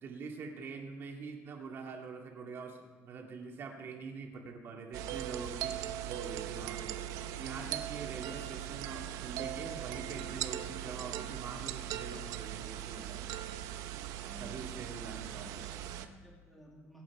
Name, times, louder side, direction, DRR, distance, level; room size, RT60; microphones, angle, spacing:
voice 1, 0.0-6.9 7.2-13.4 14.4-15.8, right 4 dB, 45° right, 1 dB, 2.3 m, -44 dB
sound 1, 4.9-16.1, right 12 dB, 80° right, 0.8 m, -40 dB
voice 2, 14.1-14.9 15.3-17.0, equal, 5° left, -3 dB, 2.2 m, -55 dB
23.5 x 8.5 x 4.8 m, 1.3 s
cardioid pair, 155°, 6 cm